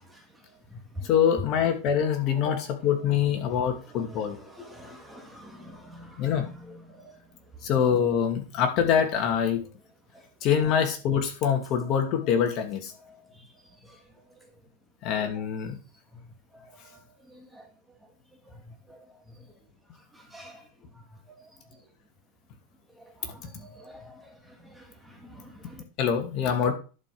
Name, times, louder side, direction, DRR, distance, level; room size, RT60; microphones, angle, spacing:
voice 1, 0.4-1.1 3.5-7.1 13.0-13.5 13.9-14.0 16.5-16.9 17.3-17.7 18.5-19.0 19.4-19.5 20.1-20.6 21.3-21.5 23.0-25.8, left 1 dB, 5° right, 2.0 m, -47 dB
voice 2, 1.0-4.4 6.2-6.5 7.6-9.6 10.4-12.9 15.0-15.8 26.0-26.7, left 8 dB, 40° left, 2.4 m, -25 dB
11.0 x 5.2 x 6.2 m
supercardioid pair, 145°, 0 cm